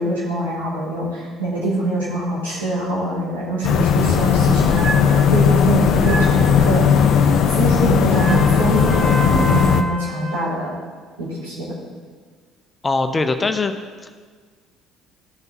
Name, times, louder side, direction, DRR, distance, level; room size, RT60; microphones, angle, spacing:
voice 1, 0.0-4.8 5.3-6.9 7.5-10.7 11.2-11.7, right 1 dB, 75° right, -8 dB, 3.2 m, -24 dB
sound 1, 3.6-9.8, left 8 dB, 50° left, 0.5 m, -16 dB
sound 2, 4.0-9.7, right 4 dB, 35° right, 0.9 m, -28 dB
Trumpet, 8.3-10.5, right 1 dB, 5° right, 3.0 m, -28 dB
voice 2, 12.8-13.7, left 3 dB, 20° left, 8 dB, 0.7 m, -20 dB
13.5 x 6.7 x 4.3 m, 1.6 s
figure-of-eight pair, 55°, 0 cm